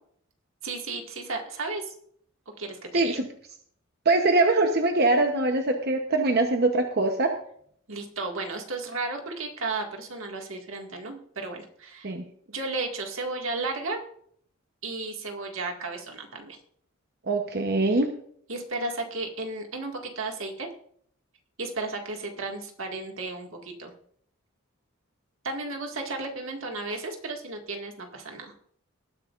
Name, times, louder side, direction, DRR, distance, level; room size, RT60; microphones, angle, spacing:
voice 1, 0.6-1.9 2.6-3.2 7.9-12.1 12.5-14.0 14.8-16.6 18.5-20.7 21.6-23.9 25.4-28.5, right 3 dB, 75° right, 2 dB, 2.0 m, -34 dB
voice 2, 2.9-3.3 4.1-7.3 12.0-12.2 17.3-18.1, right 2 dB, 50° right, 4 dB, 1.0 m, -23 dB
19.0 x 10.5 x 2.5 m, 0.64 s
head